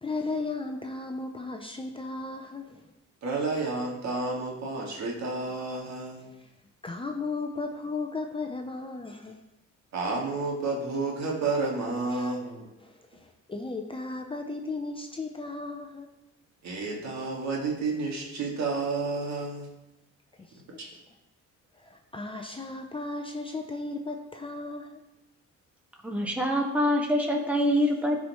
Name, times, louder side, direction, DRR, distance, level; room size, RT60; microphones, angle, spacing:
voice 1, 0.0-2.9 6.8-9.4 12.1-12.5 12.8-16.1 20.4-20.5 20.8-21.0 21.7-25.0, left 3 dB, 20° left, 3 dB, 0.7 m, -35 dB
voice 2, 3.2-6.3 9.9-12.7 16.6-19.7 20.8-20.9, right 3 dB, 65° right, -2 dB, 2.1 m, -30 dB
voice 3, 26.0-28.2, equal, 5° right, 0 dB, 1.6 m, -25 dB
14.5 x 4.9 x 3.1 m, 0.96 s
cardioid pair, 90°, 30 cm